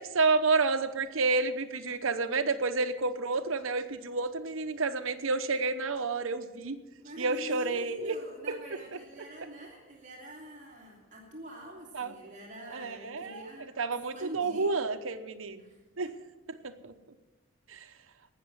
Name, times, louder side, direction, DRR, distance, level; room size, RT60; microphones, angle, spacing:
voice 1, 0.0-6.8 7.2-8.2 8.5-8.6 11.9-12.1 12.7-13.4 13.8-15.6 16.0-16.1 16.6-16.9 17.7-17.9, right 3 dB, 75° right, 8 dB, 0.9 m, -30 dB
voice 2, 7.0-13.7 14.1-14.7 15.6-16.1, equal, 35° right, -2 dB, 2.7 m, -45 dB
18.0 x 6.7 x 7.8 m, 1.2 s
head